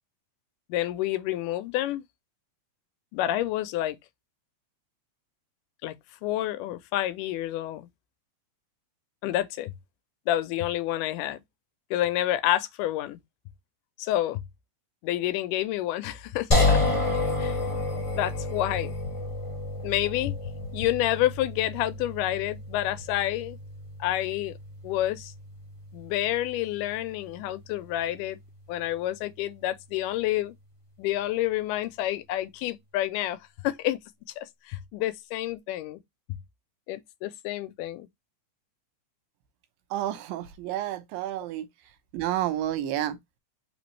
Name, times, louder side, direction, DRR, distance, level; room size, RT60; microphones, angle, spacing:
voice 1, 0.7-2.0 3.1-4.0 5.8-6.0 6.2-7.9 9.2-9.7 10.3-11.4 11.9-13.2 14.0-14.4 15.0-16.8 17.4-17.6 18.1-19.0 19.8-20.4 20.7-23.6 24.0-24.5 24.8-25.3 25.9-28.4 28.7-30.5 31.0-33.4 33.6-34.0 34.4-36.0 36.9-38.1, left 14 dB, 80° left, 2.0 m, -28 dB
sound 1, 16.5-29.6, left 2 dB, 30° left, 0.6 m, -31 dB
voice 2, 39.9-41.7 42.1-43.2, right 12 dB, 85° right, 2.5 m, -30 dB
5.0 x 3.3 x 3.1 m
omnidirectional pair, 3.9 m